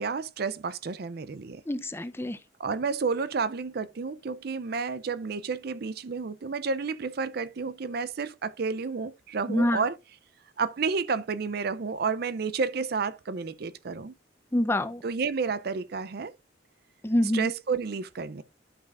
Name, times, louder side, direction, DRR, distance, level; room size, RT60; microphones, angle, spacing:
voice 1, 0.0-1.6 2.6-10.0 10.6-14.1 15.0-16.3 17.2-18.4, right 5 dB, 55° right, 0.5 m, -31 dB
voice 2, 1.7-2.4 9.5-9.8 14.5-15.0 17.0-17.5, left 1 dB, 10° left, 0.6 m, -26 dB
12.0 x 5.7 x 2.4 m
head